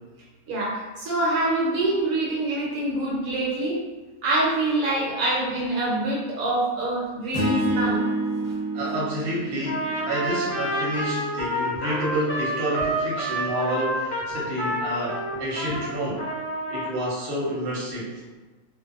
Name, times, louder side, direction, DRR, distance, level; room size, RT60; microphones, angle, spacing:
voice 1, 0.5-3.8 4.2-8.0 15.7-15.8, right 2 dB, 70° right, -6 dB, 1.0 m, -25 dB
sound 1, 7.3-11.6, right 1 dB, 35° left, 0.8 m, -29 dB
voice 2, 8.7-16.3 16.7-18.1, right 1 dB, 50° right, -7 dB, 0.9 m, -29 dB
Trumpet, 9.7-15.9 16.2-16.9, right 1 dB, 65° left, 0.9 m, -29 dB
2.5 x 2.1 x 2.4 m, 1.2 s
omnidirectional pair, 1.5 m